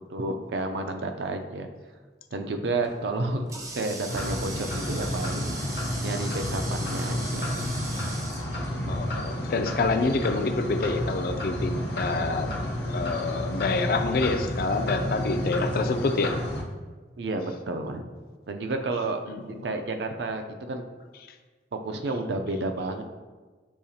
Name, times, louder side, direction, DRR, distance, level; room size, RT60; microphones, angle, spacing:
voice 1, 0.1-1.7 2.3-3.4 3.7-7.5 8.8-8.9 17.2-18.0 18.5-20.8 21.7-23.0, right 2 dB, 80° right, 5 dB, 0.5 m, -31 dB
Water tap faucet, 2.8-9.3, right 2 dB, 20° right, 0.4 m, -40 dB
sound 1, 4.1-16.6, equal, 70° left, 0.7 m, -31 dB
voice 2, 8.9-12.5 12.9-16.4 19.3-19.8, left 3 dB, 55° left, 7 dB, 0.3 m, -27 dB
6.6 x 2.8 x 2.7 m, 1.4 s
head